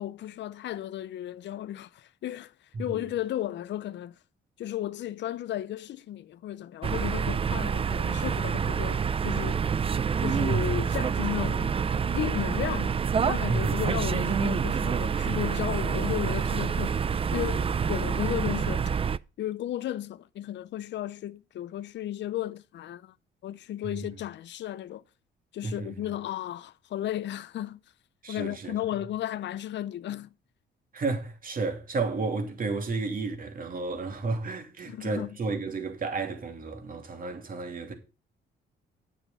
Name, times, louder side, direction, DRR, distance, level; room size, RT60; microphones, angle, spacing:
voice 1, 0.0-2.5 2.8-4.1 4.6-9.7 10.2-11.8 12.1-13.0 13.3-17.0 17.3-18.9 19.4-23.1 23.4-25.0 25.5-27.8 28.3-30.3 34.9-35.4, left 12 dB, 65° left, 0.6 m, -34 dB
sound 1, 6.8-19.2, right 6 dB, 30° right, 0.4 m, -27 dB
voice 2, 13.5-13.8 23.8-23.9 25.6-25.9 28.2-28.8 30.9-37.9, right 3 dB, 45° right, 2.9 m, -32 dB
9.6 x 7.3 x 5.6 m
cardioid pair, 90°, 20 cm